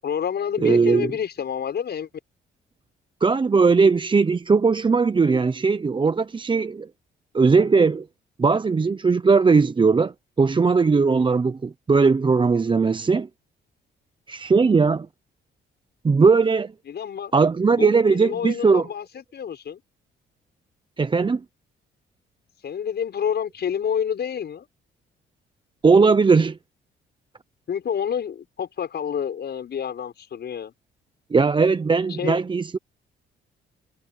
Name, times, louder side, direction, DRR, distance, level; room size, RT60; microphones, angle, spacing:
voice 1, 0.0-2.1 16.9-17.3 17.7-19.8 22.6-24.7 27.7-30.7 32.1-32.4, left 8 dB, 55° left, 6.8 m, -28 dB
voice 2, 0.6-1.1 3.2-6.9 7.3-8.1 8.4-13.3 14.3-15.1 16.0-16.7 17.3-18.9 21.0-21.4 25.8-26.6 31.3-32.8, right 4 dB, 25° right, 0.7 m, -19 dB
cardioid pair, 90°, 20 cm